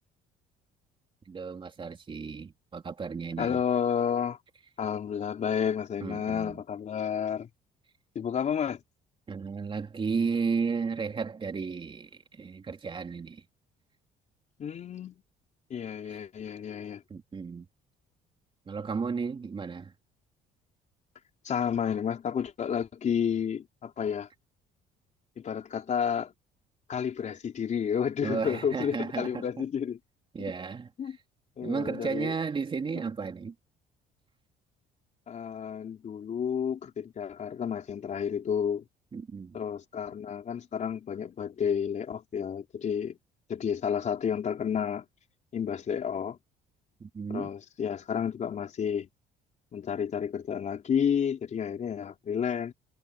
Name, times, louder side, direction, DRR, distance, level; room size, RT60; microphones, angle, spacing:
voice 1, 1.2-3.6 6.0-6.6 9.3-13.4 16.0-16.2 17.1-17.7 18.7-19.9 28.2-29.6 30.3-31.2 31.6-33.5 39.1-39.6 47.0-47.5, right 5 dB, 30° right, 3.2 m, -34 dB
voice 2, 3.4-4.4 4.8-7.5 8.1-8.8 14.6-15.2 15.7-17.0 21.4-24.3 25.4-26.3 26.9-30.0 31.0-31.2 31.6-32.3 35.3-38.8 39.5-43.2 43.5-45.0 45.5-46.4 47.3-49.1 49.7-52.7, left 7 dB, 45° left, 4.4 m, -31 dB
cardioid pair, 110°, 17 cm